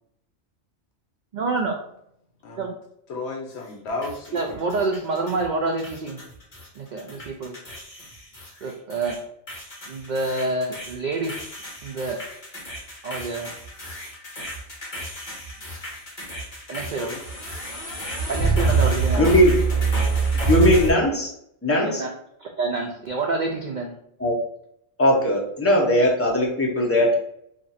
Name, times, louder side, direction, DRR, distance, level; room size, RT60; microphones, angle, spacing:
voice 1, 1.3-1.8 2.6-2.7 4.3-6.2 6.7-7.6 8.6-9.2 9.8-11.4 11.8-12.2 13.0-13.6 16.7-17.1 18.3-19.3 21.8-22.1 22.4-23.9, right 3 dB, 80° right, 2 dB, 0.4 m, -27 dB
voice 2, 3.1-4.6 16.7-17.2, left 3 dB, 60° left, 1 dB, 0.9 m, -33 dB
sound 1, 4.0-5.5 5.8-6.7 7.0-9.2 9.5-20.9, right 3 dB, 40° left, 1.3 m, -27 dB
voice 3, 19.2-19.5 20.5-21.3 21.6-22.0 24.2-24.3 25.0-27.2, equal, 15° left, -2 dB, 0.6 m, -19 dB
2.8 x 2.6 x 4.0 m, 0.74 s
omnidirectional pair, 1.3 m